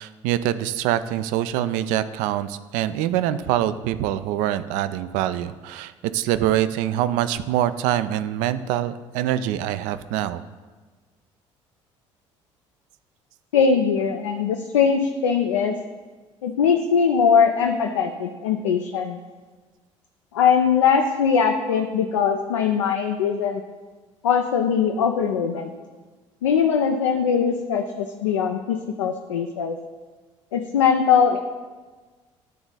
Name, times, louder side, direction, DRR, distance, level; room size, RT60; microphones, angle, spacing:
voice 1, 0.0-10.4, right 12 dB, 55° right, 13 dB, 0.4 m, -24 dB
voice 2, 13.5-15.8 16.4-19.2 20.3-23.6 24.2-25.7 26.4-29.8 30.5-31.4, left 6 dB, 70° left, 4 dB, 0.4 m, -21 dB
11.0 x 3.8 x 4.0 m, 1.3 s
figure-of-eight pair, 55°, 16 cm